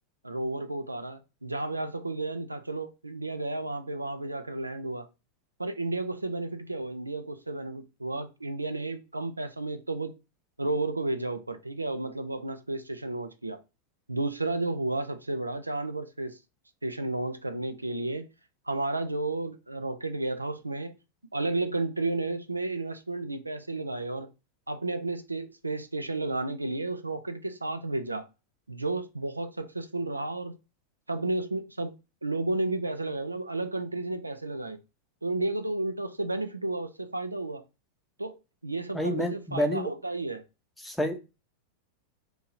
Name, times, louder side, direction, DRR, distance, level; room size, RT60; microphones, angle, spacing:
voice 1, 0.2-5.1 5.6-10.1 10.6-13.6 14.1-16.4 16.8-18.3 18.7-20.9 21.3-24.3 24.7-28.3 28.7-30.6 31.1-31.9 32.2-34.8 35.2-37.6 38.2-40.4, right 2 dB, 85° right, 0.3 m, -32 dB
voice 2, 38.9-39.9 40.8-41.2, equal, 5° left, 0.7 m, -28 dB
2.8 x 2.7 x 4.1 m
figure-of-eight pair, 90°, 0 cm